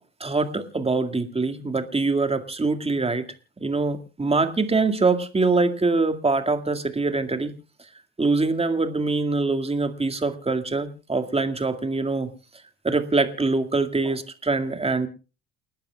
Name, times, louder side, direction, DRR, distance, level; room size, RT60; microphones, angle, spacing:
voice 1, 0.2-3.3 3.6-7.5 8.2-12.3 12.8-15.1, right 3 dB, 15° right, 8 dB, 2.1 m, -24 dB
29.0 x 12.5 x 2.3 m, 0.33 s
hypercardioid pair, 60°, 36 cm